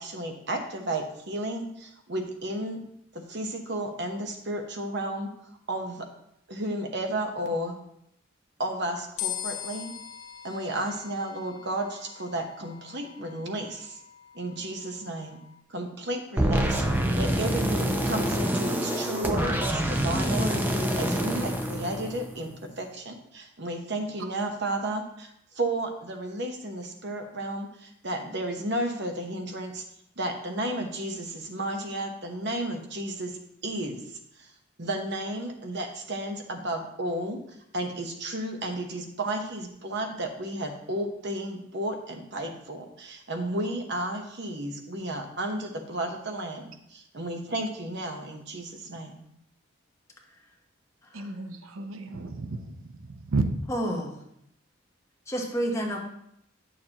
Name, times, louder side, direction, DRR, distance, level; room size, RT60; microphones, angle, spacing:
voice 1, 0.0-2.8 3.1-5.3 5.7-6.1 6.5-7.7 8.6-9.9 10.4-14.0 14.3-15.4 15.7-16.8 17.2-29.8 30.2-34.5 34.8-37.4 37.7-49.2, right 1 dB, 55° right, 4 dB, 1.0 m, -33 dB
sound 1, 9.2-15.6, left 11 dB, 90° left, 0.9 m, -41 dB
sound 2, 16.4-22.5, equal, 10° right, 0.6 m, -26 dB
voice 2, 51.1-53.4, right 3 dB, 85° right, 7 dB, 0.6 m, -32 dB
voice 3, 53.7-54.1 55.3-56.0, equal, 15° left, 0 dB, 1.1 m, -29 dB
9.3 x 6.7 x 2.9 m, 0.75 s
head